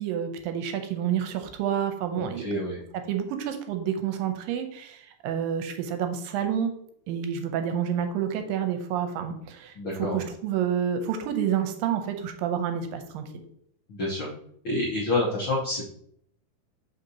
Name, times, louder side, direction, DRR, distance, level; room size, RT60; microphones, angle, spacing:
voice 1, 0.0-2.5 3.1-6.7 7.1-9.7 10.0-13.4, right 8 dB, 90° right, 7 dB, 2.4 m, -29 dB
voice 2, 2.1-2.8 9.7-10.2 13.9-14.3 14.6-15.9, left 2 dB, 90° left, -5 dB, 1.1 m, -28 dB
6.8 x 5.0 x 2.8 m, 0.68 s
omnidirectional pair, 4.1 m